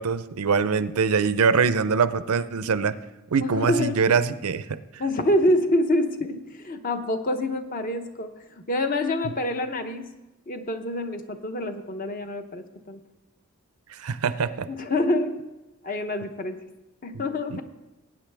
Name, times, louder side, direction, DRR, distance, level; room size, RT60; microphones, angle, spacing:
voice 1, 0.0-2.9 3.3-4.8 13.9-14.7 17.1-17.2 17.5-17.6, right 5 dB, 80° right, 14 dB, 0.5 m, -23 dB
voice 2, 3.4-4.0 5.0-8.3 8.6-10.1 10.5-13.0 14.7-15.4 15.8-16.6 17.0-17.6, left 1 dB, 40° left, 7 dB, 0.8 m, -26 dB
19.0 x 8.8 x 3.4 m, 1.0 s
head